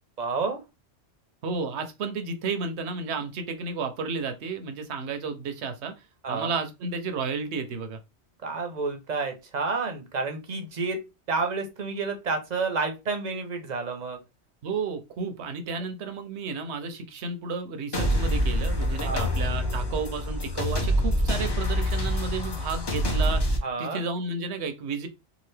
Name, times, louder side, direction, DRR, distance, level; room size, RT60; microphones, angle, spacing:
voice 1, 0.2-0.6 6.2-6.5 8.4-11.0 11.3-14.2 15.7-15.8 19.0-19.3 23.6-24.0, right 4 dB, 45° right, 0.7 m, -30 dB
voice 2, 1.4-5.9 6.3-8.0 14.6-23.4 23.8-25.1, right 4 dB, 75° right, 0.9 m, -32 dB
sound 1, 17.9-23.6, equal, 30° left, 0.5 m, -26 dB
2.9 x 2.5 x 3.2 m
omnidirectional pair, 1.2 m